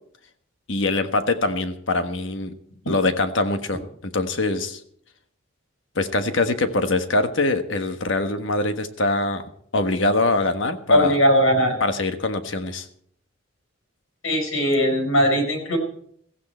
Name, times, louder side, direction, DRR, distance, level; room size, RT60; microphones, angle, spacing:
voice 1, 0.7-2.6 2.9-4.8 5.9-9.4 9.7-11.2 11.8-12.9, left 2 dB, 65° left, 8 dB, 1.4 m, -23 dB
voice 2, 10.9-11.7 14.2-15.8, equal, 90° left, 5 dB, 4.6 m, -19 dB
15.5 x 15.0 x 4.4 m, 0.64 s
head